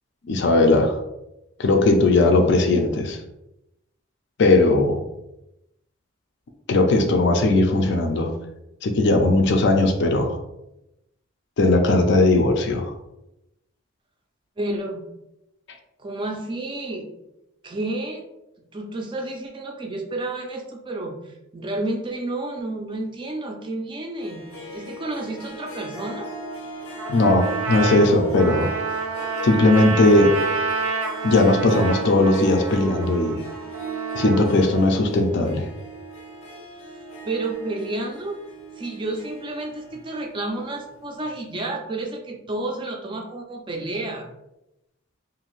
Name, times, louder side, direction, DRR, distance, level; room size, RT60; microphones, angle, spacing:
voice 1, 0.3-1.0 1.6-3.2 4.4-5.0 6.7-8.3 8.8-10.4 11.6-12.9 27.1-28.7 29.4-30.3 31.2-33.4 34.1-35.7, left 2 dB, 55° left, 4 dB, 0.4 m, -18 dB
voice 2, 14.6-15.1 16.0-17.1 17.6-18.2 18.7-26.3 37.3-38.4 38.8-44.3, right 2 dB, 25° right, 2 dB, 0.3 m, -30 dB
Harp, 24.2-41.0, right 2 dB, 90° left, 0.7 m, -37 dB
Trumpet, 27.0-35.0, right 4 dB, 85° right, 0.5 m, -29 dB
2.6 x 2.4 x 3.0 m, 0.89 s
head